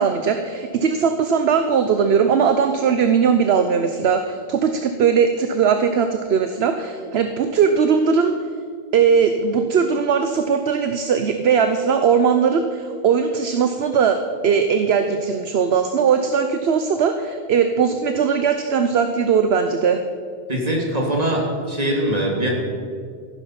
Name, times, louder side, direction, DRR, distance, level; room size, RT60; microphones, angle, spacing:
voice 1, 0.0-8.3 8.9-20.0, right 6 dB, 65° right, 7 dB, 1.0 m, -19 dB
voice 2, 20.5-22.5, right 1 dB, 35° right, -1 dB, 2.9 m, -22 dB
14.5 x 11.0 x 5.9 m, 2.1 s
omnidirectional pair, 1.2 m